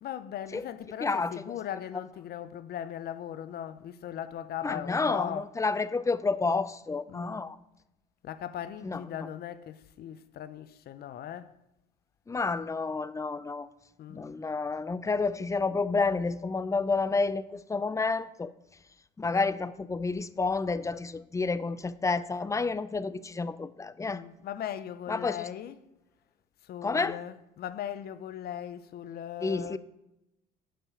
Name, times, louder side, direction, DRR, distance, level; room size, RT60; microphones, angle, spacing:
voice 1, 0.0-5.6 7.1-7.4 8.2-11.5 14.0-14.4 24.1-25.9 26.6-29.8, left 10 dB, 55° left, 0.7 m, -39 dB
voice 2, 1.0-1.3 4.6-7.6 8.8-9.0 12.3-13.7 14.1-18.5 19.2-24.2 25.1-25.5 26.8-27.2 29.4-29.8, left 4 dB, 15° left, 0.5 m, -30 dB
8.6 x 5.5 x 7.1 m
supercardioid pair, 80°, 20 cm